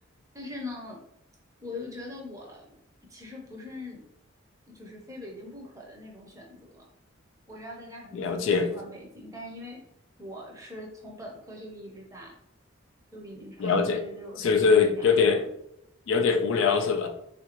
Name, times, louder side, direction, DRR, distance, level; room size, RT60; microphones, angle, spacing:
voice 1, 0.3-1.0 1.6-2.7 3.1-4.0 4.7-6.9 7.5-9.8 10.2-12.4 13.1-15.4, left 1 dB, 15° right, -1 dB, 0.6 m, -42 dB
voice 2, 8.1-8.7 13.6-14.0 14.4-15.4 16.1-17.1, left 5 dB, 65° left, 6 dB, 0.4 m, -22 dB
3.6 x 2.5 x 2.9 m, 0.79 s
head